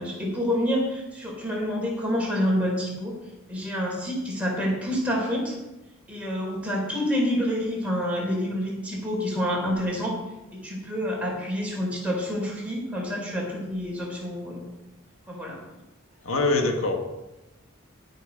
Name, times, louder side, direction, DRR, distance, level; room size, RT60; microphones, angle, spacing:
voice 1, 0.0-3.2 3.5-5.5 6.1-10.1 10.5-14.7 15.3-15.6, equal, 5° right, -3 dB, 4.1 m, -28 dB
voice 2, 16.2-16.9, left 2 dB, 80° left, 2 dB, 1.8 m, -23 dB
17.5 x 6.4 x 5.3 m, 0.99 s
head